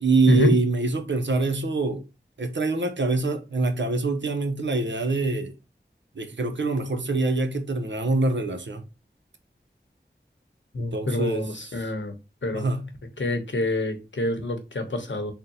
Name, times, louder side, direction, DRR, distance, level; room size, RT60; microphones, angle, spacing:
voice 1, 0.0-2.0 2.4-5.5 6.2-8.8 10.9-11.4 12.5-12.9, right 3 dB, 70° right, 0.7 m, -24 dB
voice 2, 10.7-12.1 12.4-12.7 13.2-15.3, left 1 dB, 80° left, 0.9 m, -26 dB
3.6 x 2.1 x 4.1 m
wide cardioid pair, 55°, 19 cm